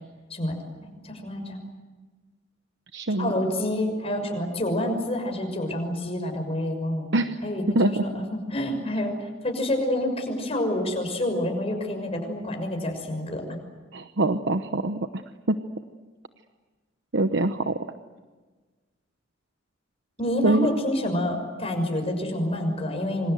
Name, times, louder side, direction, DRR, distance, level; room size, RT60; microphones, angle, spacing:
voice 1, 0.3-1.6 3.2-7.1 7.4-9.2 9.4-13.5 20.2-23.3, left 1 dB, 30° left, 4 dB, 6.2 m, -28 dB
voice 2, 2.9-3.3 7.1-7.4 7.7-8.0 13.9-15.2 15.5-15.6 17.1-17.8 20.4-20.7, right 2 dB, 65° right, 9 dB, 1.0 m, -24 dB
27.0 x 25.5 x 7.9 m, 1.3 s
head